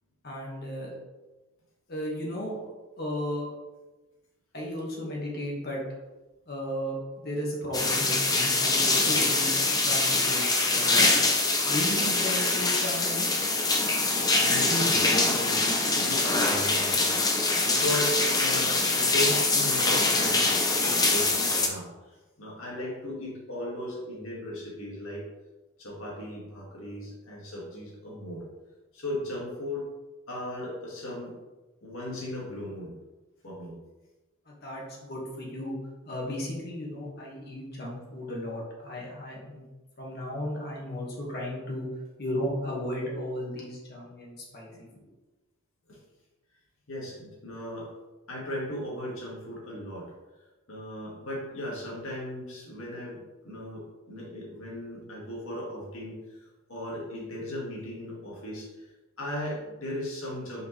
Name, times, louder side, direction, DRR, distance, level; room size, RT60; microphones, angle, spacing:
voice 1, 0.2-0.9 1.9-2.7 3.0-3.5 4.5-5.8 6.5-11.1 11.7-13.4 34.5-35.8 36.0-39.6 40.0-41.9 42.2-45.0, equal, 50° left, -3 dB, 1.7 m, -35 dB
sound 1, 7.7-21.7, left 3 dB, 15° left, 0.6 m, -24 dB
voice 2, 14.4-25.3 25.8-28.4 28.9-29.9 30.3-31.3 31.8-32.9 33.4-33.8 45.9-46.0 46.9-47.9 48.3-50.1 50.7-56.4 56.7-60.6, left 1 dB, 70° left, -4 dB, 2.0 m, -37 dB
5.9 x 5.0 x 3.2 m, 1.1 s
head